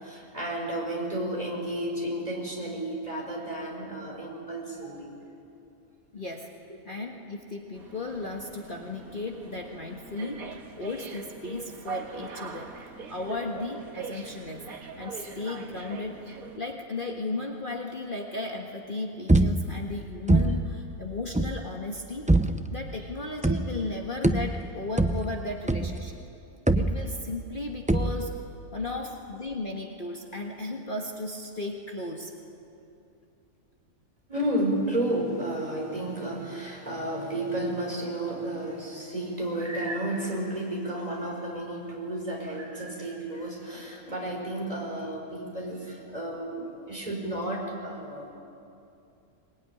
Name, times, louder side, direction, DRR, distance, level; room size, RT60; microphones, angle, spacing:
voice 1, 0.0-5.1 26.5-26.6 34.3-48.3, right 1 dB, 25° right, -1 dB, 5.6 m, -32 dB
voice 2, 6.1-6.5 6.8-10.5 10.8-12.7 13.1-14.7 15.0-26.2 26.7-28.4 28.7-32.3, left 2 dB, 35° left, 1 dB, 1.8 m, -35 dB
sound 1, 7.7-16.6, right 4 dB, 75° right, 2.2 m, -42 dB
sound 2, 19.3-19.9 20.3-20.8 21.4-21.7 22.3-22.8 23.4-23.9 24.2-26.2 26.7-27.4 27.9-28.4, right 2 dB, 10° right, 0.5 m, -24 dB
24.5 x 21.0 x 9.9 m, 2.7 s
omnidirectional pair, 1.5 m